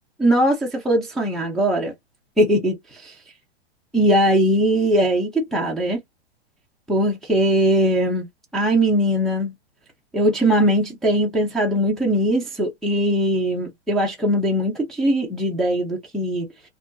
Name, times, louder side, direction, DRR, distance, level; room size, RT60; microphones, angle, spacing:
voice 1, 0.2-1.9 2.4-2.8 3.0-3.1 3.9-6.0 6.9-8.3 8.5-9.5 10.1-16.5, right 1 dB, ahead, 0.4 m, -20 dB
2.4 x 2.3 x 2.2 m
hypercardioid pair, 135°, 33 cm